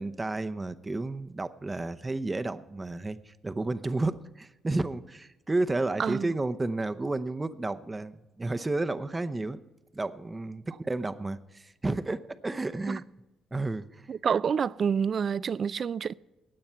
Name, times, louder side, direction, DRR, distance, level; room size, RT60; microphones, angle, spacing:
voice 1, 0.0-9.6 9.9-13.0 13.5-14.1, right 2 dB, 20° right, 0.7 m, -32 dB
voice 2, 6.0-6.3 12.9-13.0 14.1-16.1, right 7 dB, 50° right, 0.3 m, -28 dB
16.5 x 9.5 x 4.4 m
cardioid pair, 90°, 0 cm